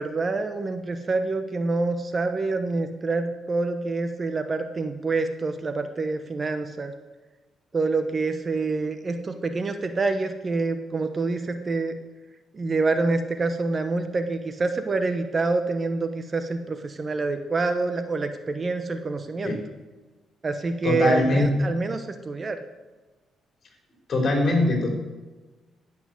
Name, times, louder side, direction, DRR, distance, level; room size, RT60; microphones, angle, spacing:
voice 1, 0.0-6.9 7.7-12.0 12.5-19.6 20.4-22.6, right 3 dB, 35° right, 8 dB, 1.0 m, -26 dB
voice 2, 20.8-21.5 24.1-24.9, left 2 dB, 45° left, 1 dB, 4.1 m, -22 dB
14.5 x 6.1 x 7.8 m, 1.2 s
cardioid pair, 90°, 0 cm